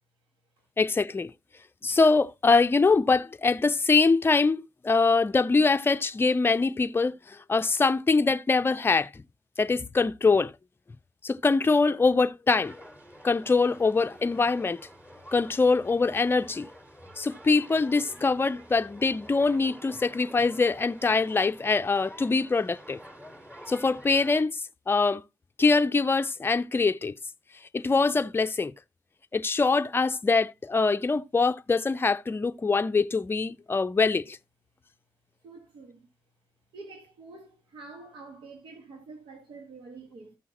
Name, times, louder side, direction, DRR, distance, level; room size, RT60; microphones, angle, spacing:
voice 1, 0.8-1.3 1.8-9.1 9.6-10.5 11.2-12.8 13.2-14.8 15.3-16.7 17.2-23.0 23.7-24.6 24.9-25.2 25.6-27.1 27.7-28.7 29.3-34.4, left 4 dB, 25° left, 0.5 m, -23 dB
sound 1, 12.5-24.4, equal, 20° right, 4.0 m, -49 dB
voice 2, 35.4-36.1 36.7-40.4, right 3 dB, 85° right, 1.6 m, -47 dB
14.0 x 6.2 x 2.9 m
cardioid pair, 70°, 8 cm